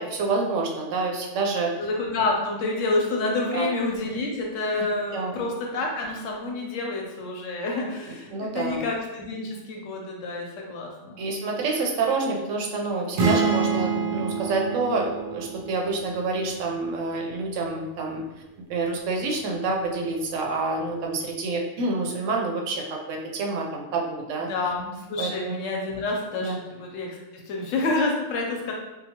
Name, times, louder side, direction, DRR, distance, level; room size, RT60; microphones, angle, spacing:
voice 1, 0.0-1.7 3.5-3.7 4.7-4.9 5.1-5.4 8.3-8.8 11.2-18.2 18.7-24.5 25.2-25.6 26.4-26.6, right 3 dB, 80° right, 0 dB, 0.9 m, -28 dB
voice 2, 1.8-11.2 24.4-28.7, left 2 dB, 85° left, 0 dB, 1.0 m, -28 dB
sound 1, 13.2-16.9, right 5 dB, 60° right, 0.6 m, -27 dB
2.8 x 2.2 x 2.8 m, 1.0 s
omnidirectional pair, 1.3 m